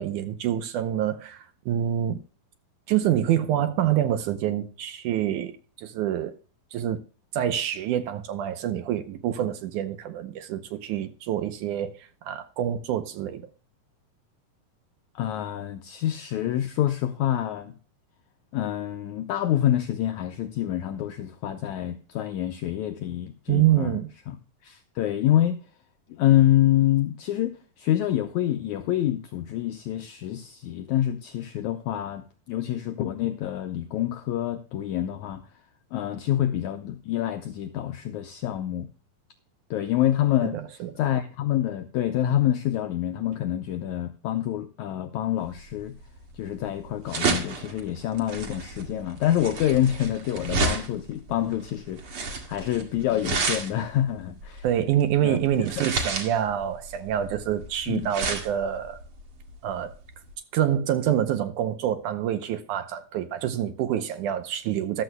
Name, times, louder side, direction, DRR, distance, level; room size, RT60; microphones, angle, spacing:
voice 1, 0.0-2.2 2.9-6.4 6.7-7.0 7.3-13.5 23.5-24.1 40.4-40.9 54.6-59.0 59.6-59.9 60.5-65.0, right 11 dB, 75° right, 2.0 m, -26 dB
voice 2, 15.1-17.7 18.5-24.0 24.3-24.4 24.6-25.6 26.1-35.4 35.9-38.9 39.7-40.6 41.0-46.0 46.3-54.6 55.2-55.4 55.8-55.9 57.9-58.1, left 12 dB, 85° left, 1.7 m, -26 dB
sound 1, 45.5-60.3, right 4 dB, 45° right, 2.4 m, -31 dB
14.0 x 12.5 x 2.2 m
omnidirectional pair, 4.1 m